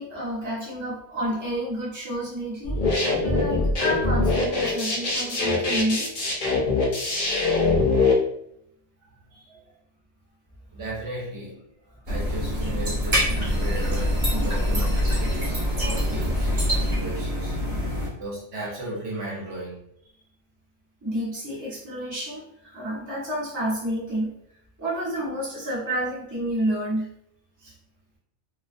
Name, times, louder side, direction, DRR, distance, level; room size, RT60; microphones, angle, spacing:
voice 1, 0.0-6.1 7.5-7.7 18.0-18.1 21.0-24.3 24.8-27.1 27.6-27.7, equal, 15° right, -7 dB, 0.8 m, -30 dB
sound 1, 2.6-8.1, left 3 dB, 50° left, 0.6 m, -23 dB
voice 2, 10.7-11.6 12.1-17.6 18.2-19.8, right 1 dB, 65° right, -4 dB, 1.0 m, -36 dB
sound 2, 12.1-18.1, equal, 35° right, 1.1 m, -24 dB
2.4 x 2.3 x 2.5 m, 0.74 s
omnidirectional pair, 1.2 m